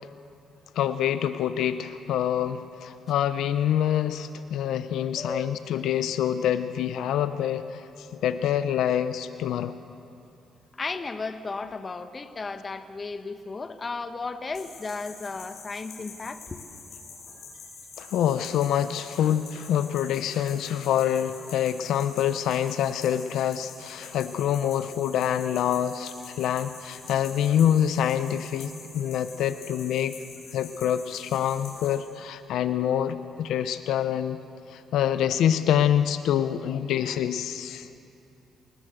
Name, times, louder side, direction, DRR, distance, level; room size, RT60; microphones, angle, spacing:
voice 1, 0.8-9.8 18.0-30.1 30.5-34.4 34.7-37.9, left 10 dB, 80° left, 11 dB, 0.7 m, -26 dB
voice 2, 5.2-5.5 10.8-16.6, left 4 dB, 30° left, 9 dB, 1.1 m, -34 dB
sound 1, 14.5-32.0, left 4 dB, 65° left, 7.2 m, -46 dB
21.0 x 19.0 x 7.8 m, 2.7 s
cardioid pair, 90°, 0 cm